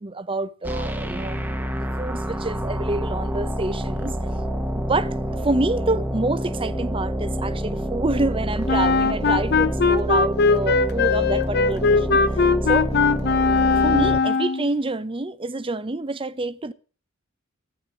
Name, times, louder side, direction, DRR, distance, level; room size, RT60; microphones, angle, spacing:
voice 1, 0.0-1.4 1.7-4.2 4.8-12.2 12.6-12.9 13.8-16.7, right 2 dB, 25° right, 0.7 m, -27 dB
sound 1, 0.6-14.2, equal, 10° right, 1.2 m, -27 dB
Wind instrument woodwind instrument, 8.7-14.7, left 4 dB, 50° left, 0.7 m, -20 dB
14.0 x 8.8 x 6.4 m
head